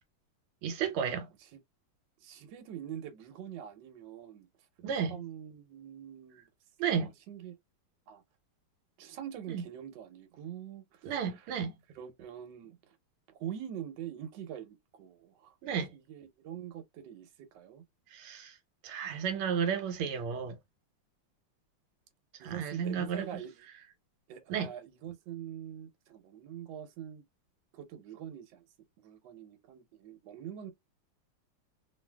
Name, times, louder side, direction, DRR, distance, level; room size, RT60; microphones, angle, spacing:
voice 1, 0.6-1.3 4.8-5.2 6.8-7.1 9.5-9.6 11.0-11.7 15.6-15.9 18.1-18.5 18.8-20.6 22.4-23.3 24.5-24.7, right 7 dB, 85° right, 1.6 m, -32 dB
voice 2, 2.2-4.5 5.1-6.5 7.0-7.5 8.1-8.2 9.0-11.5 11.9-13.0 13.4-15.5 15.9-17.8 22.4-23.7 24.3-27.2 27.7-28.6 29.0-30.7, right 10 dB, 65° right, 1.3 m, -44 dB
3.3 x 2.4 x 2.2 m
omnidirectional pair, 2.4 m